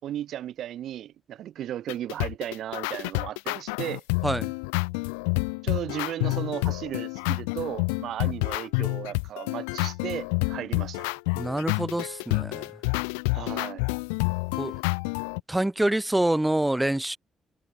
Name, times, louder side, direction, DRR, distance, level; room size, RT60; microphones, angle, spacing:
voice 1, 0.0-4.0 5.6-11.1 13.3-13.8, right 11 dB, 70° right, 6.5 m, -35 dB
sound 1, 1.9-15.4, left 34 dB, 85° left, 2.7 m, -29 dB
voice 2, 11.3-12.7 14.6-14.8 15.5-17.2, right 1 dB, 10° right, 3.4 m, -26 dB
hypercardioid pair, 45°, 0 cm